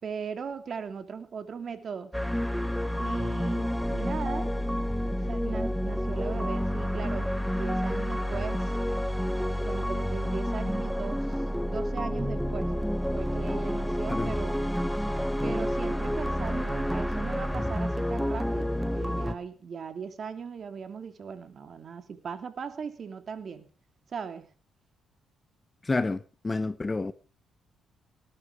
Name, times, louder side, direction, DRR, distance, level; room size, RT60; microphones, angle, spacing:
voice 1, 0.0-2.1 3.0-4.6 5.0-8.7 9.6-12.7 13.1-14.6 15.4-23.7 24.1-24.5, right 6 dB, 50° right, 3.0 m, -38 dB
sound 1, 2.1-19.3, equal, ahead, 1.4 m, -29 dB
voice 2, 25.8-27.1, left 3 dB, 20° left, 1.1 m, -29 dB
19.0 x 12.0 x 4.9 m
cardioid pair, 90°, 0 cm